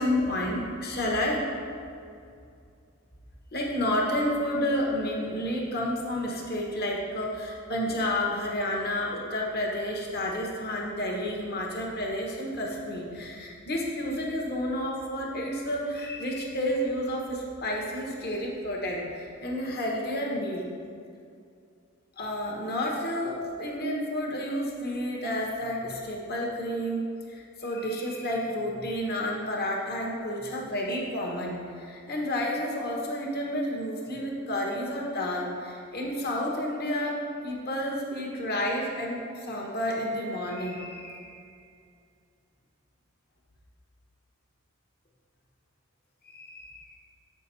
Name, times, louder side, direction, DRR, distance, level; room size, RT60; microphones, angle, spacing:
voice 1, 0.0-1.4 3.5-20.6 22.2-27.0 27.3-37.2 37.4-41.4 46.3-46.9, left 1 dB, 50° left, -1 dB, 1.3 m, -30 dB
8.0 x 6.2 x 4.2 m, 2.4 s
head